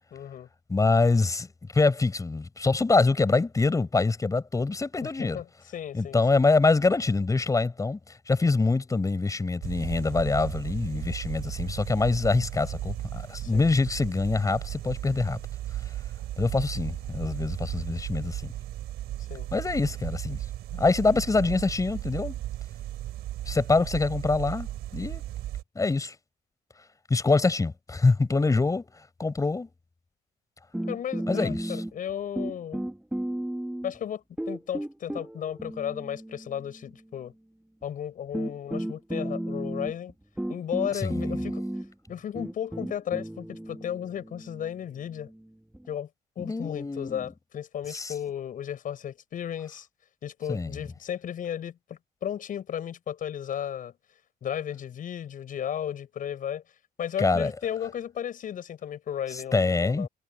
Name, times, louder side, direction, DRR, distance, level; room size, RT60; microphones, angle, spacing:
voice 1, 0.1-0.5 5.0-5.4 5.7-6.4 13.4-13.7 19.3-19.5 28.3-28.7 30.9-32.8 33.8-37.3 37.8-40.1 40.5-41.6 42.1-45.3 45.9-46.1 46.4-49.9 50.2-53.9 54.4-56.6 57.0-60.1, left 9 dB, 55° left, 7.7 m, -34 dB
voice 2, 0.7-1.5 1.7-5.4 5.9-15.4 16.4-18.5 19.5-20.4 20.7-22.4 23.5-25.2 25.8-26.2 27.1-28.9 29.2-29.7 31.3-31.8 40.9-41.5 46.4-47.2 47.9-48.1 50.5-50.8 57.2-57.5 59.3-60.1, left 3 dB, 20° left, 5.4 m, -25 dB
sound 1, 9.6-25.6, right 13 dB, 75° right, 5.2 m, -36 dB
sound 2, 30.7-32.1 32.4-34.0 34.4-36.8 37.8-37.9 38.3-45.9, right 1 dB, 5° right, 2.9 m, -34 dB
cardioid pair, 110°, 17 cm